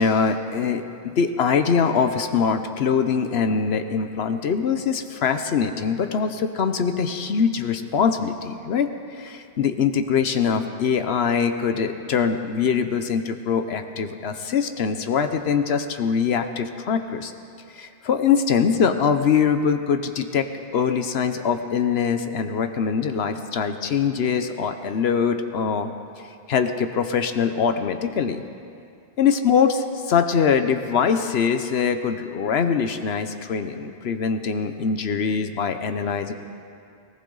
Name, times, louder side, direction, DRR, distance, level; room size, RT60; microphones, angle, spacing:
voice 1, 0.0-17.3 17.7-20.5 20.7-25.9 26.5-28.4 29.2-36.3, left 6 dB, 80° left, 8 dB, 1.0 m, -23 dB
19.0 x 19.0 x 3.9 m, 2.4 s
omnidirectional pair, 1.1 m